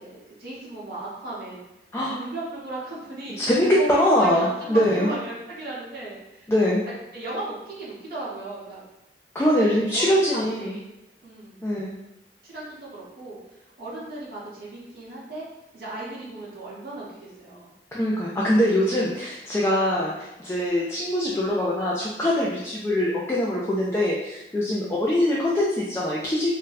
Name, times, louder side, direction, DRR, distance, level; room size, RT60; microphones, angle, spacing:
voice 1, 0.0-1.6 2.1-3.4 3.8-6.5 7.1-8.8 9.6-10.8 11.2-11.6 12.4-13.4 13.8-15.5 15.7-17.7 24.7-25.0, right 2 dB, 55° right, -7 dB, 0.8 m, -35 dB
voice 2, 3.4-5.1 6.5-6.8 9.3-10.8 11.6-11.9 17.9-26.5, left 1 dB, 15° left, -5 dB, 0.3 m, -23 dB
2.6 x 2.1 x 3.9 m, 0.93 s
head